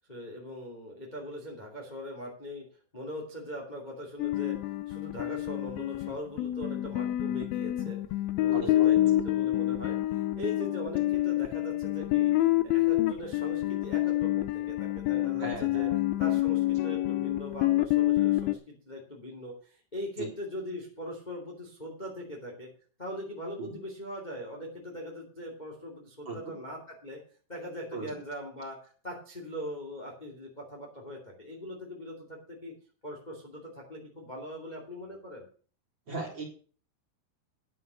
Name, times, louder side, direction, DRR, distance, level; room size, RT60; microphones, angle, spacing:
voice 1, 0.1-2.6 2.9-4.6 4.9-8.0 8.4-15.9 16.2-22.7 23.0-27.2 27.5-32.7 33.0-35.5, equal, 15° left, 0 dB, 1.9 m, -41 dB
sound 1, 4.2-18.6, left 15 dB, 80° left, 2.2 m, -27 dB
voice 2, 8.5-9.2 15.4-16.0 20.2-20.3 23.6-23.8 26.3-26.4 27.9-28.1 36.1-36.4, right 2 dB, 30° right, 0 dB, 3.7 m, -38 dB
11.5 x 7.8 x 6.9 m, 0.41 s
omnidirectional pair, 4.8 m